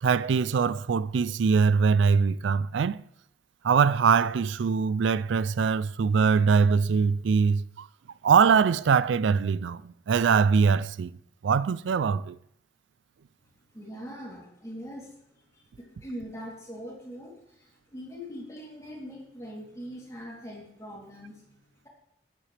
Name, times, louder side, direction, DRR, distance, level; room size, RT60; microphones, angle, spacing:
voice 1, 0.0-3.0 3.6-7.9 8.2-11.2 11.4-12.4, right 6 dB, 85° right, 0.4 m, -23 dB
voice 2, 13.7-15.2 15.5-21.4, equal, 15° left, 3.0 m, -42 dB
13.5 x 10.5 x 3.3 m
head